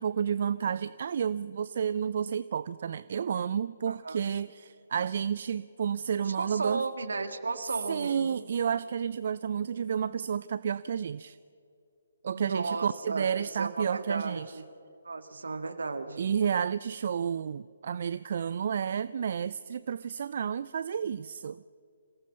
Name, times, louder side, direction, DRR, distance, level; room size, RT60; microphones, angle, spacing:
voice 1, 0.0-6.8 7.9-11.4 12.2-14.6 16.2-21.6, right 7 dB, 50° right, 17 dB, 0.4 m, -31 dB
voice 2, 3.9-4.2 6.3-8.3 12.3-13.3 13.6-14.6 15.0-16.3, right 3 dB, 70° right, 9 dB, 1.8 m, -34 dB
27.0 x 18.0 x 5.4 m, 2.5 s
figure-of-eight pair, 140°, 0 cm